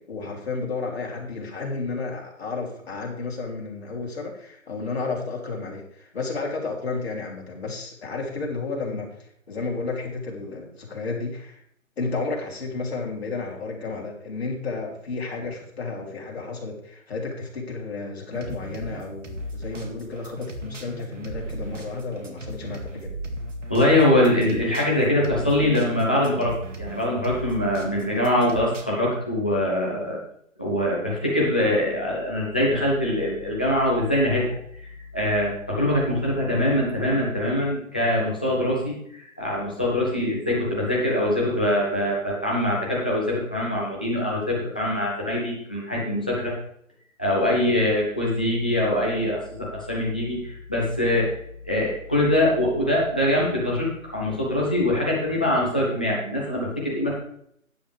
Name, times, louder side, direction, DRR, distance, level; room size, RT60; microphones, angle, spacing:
voice 1, 0.0-9.1 9.5-11.6 12.0-23.1, left 3 dB, 50° left, 0 dB, 3.1 m, -32 dB
sound 1, 18.3-28.8, right 1 dB, 65° right, 2.2 m, -37 dB
voice 2, 23.7-26.5 26.8-30.2 30.6-34.6 35.1-46.6 47.2-51.4 51.6-57.1, left 1 dB, 5° left, -5 dB, 0.6 m, -23 dB
12.5 x 9.1 x 3.4 m, 0.69 s
figure-of-eight pair, 155°, 41 cm